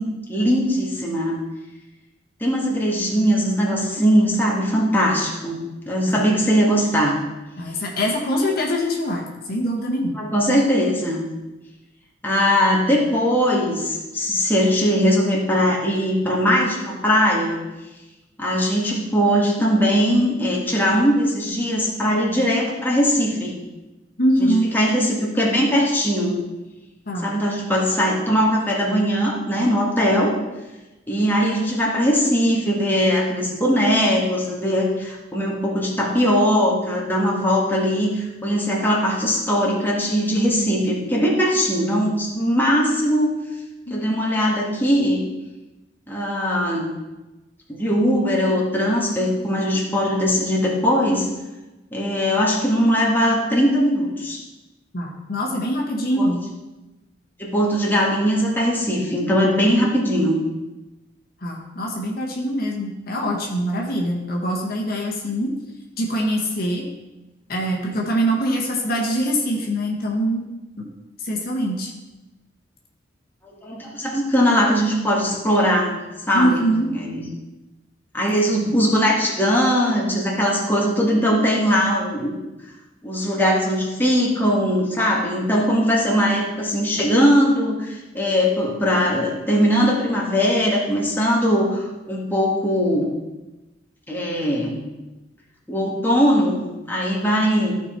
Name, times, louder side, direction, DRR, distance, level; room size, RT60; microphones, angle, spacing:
voice 1, 0.0-1.4 2.4-5.6 5.9-7.2 10.1-11.2 12.2-17.6 18.4-23.6 24.4-26.5 27.2-30.3 31.1-43.3 43.9-45.2 46.1-46.9 47.7-51.3 51.9-54.4 56.2-56.3 57.4-60.4 73.4-75.9 76.3-77.3 78.1-82.4 83.0-93.1 94.1-94.8 95.7-97.7, equal, 10° left, -3 dB, 1.8 m, -20 dB
voice 2, 7.6-10.2 24.2-24.7 27.1-27.3 43.9-44.0 54.9-56.4 61.4-65.5 66.0-66.8 67.5-70.4 70.8-70.9 71.2-71.9 76.3-76.9, equal, 55° left, 0 dB, 1.6 m, -23 dB
14.0 x 5.4 x 4.4 m, 1.1 s
head